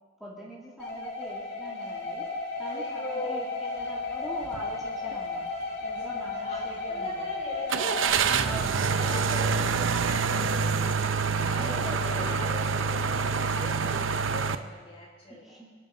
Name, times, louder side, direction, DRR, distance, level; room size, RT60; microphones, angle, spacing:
voice 1, 0.2-2.3 2.6-5.4 5.8-7.3 8.4-8.8 11.6-12.4 15.3-15.7, equal, ahead, -8 dB, 2.9 m, -43 dB
sound 1, 0.8-8.1, left 3 dB, 55° left, 2.6 m, -34 dB
voice 2, 2.7-3.5 5.0-5.2 6.2-15.6, left 1 dB, 35° left, -1 dB, 4.4 m, -41 dB
sound 2, 4.4-4.7 5.1-5.2 7.7-14.6, right 5 dB, 85° right, 0.7 m, -26 dB
29.5 x 11.0 x 4.1 m, 1.6 s
head